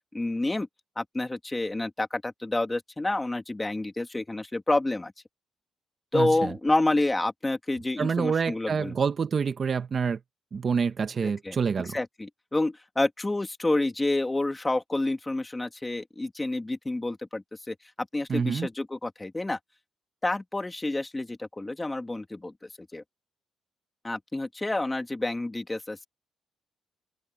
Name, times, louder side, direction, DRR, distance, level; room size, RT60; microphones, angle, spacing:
voice 1, 0.1-0.7 1.0-5.1 6.1-9.0 11.2-19.6 20.2-23.0 24.0-26.1, left 2 dB, 15° left, 2.4 m, -29 dB
voice 2, 6.1-6.5 8.0-10.2 10.5-12.0 18.3-18.7, right 6 dB, 40° right, 1.4 m, -27 dB
open air
cardioid pair, 110°, 0 cm